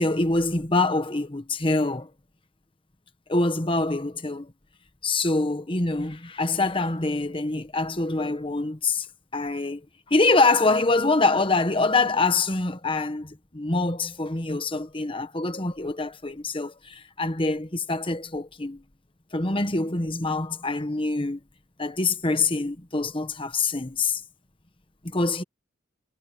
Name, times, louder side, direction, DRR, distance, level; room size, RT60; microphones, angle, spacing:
voice 1, 0.0-2.1 3.3-4.5 5.0-9.1 9.3-9.8 10.1-18.8 19.3-21.4 21.8-24.2 25.0-25.4, left 3 dB, 25° left, 1.2 m, -25 dB
head